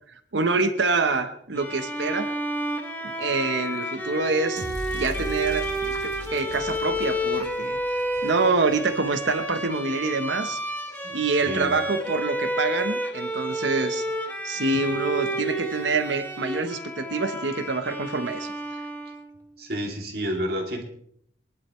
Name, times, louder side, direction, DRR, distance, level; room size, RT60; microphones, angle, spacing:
voice 1, 0.3-2.3 3.0-4.7 4.9-7.8 8.2-10.6 11.1-14.0 14.4-18.5, right 3 dB, 85° right, 9 dB, 1.0 m, -26 dB
Bowed string instrument, 1.6-19.4, right 1 dB, 10° left, 1.3 m, -31 dB
sound 1, 4.6-8.8, left 1 dB, 75° left, 2.9 m, -38 dB
voice 2, 10.9-11.7 19.6-20.8, equal, 60° right, 1 dB, 2.7 m, -30 dB
23.0 x 11.5 x 3.2 m, 0.67 s
head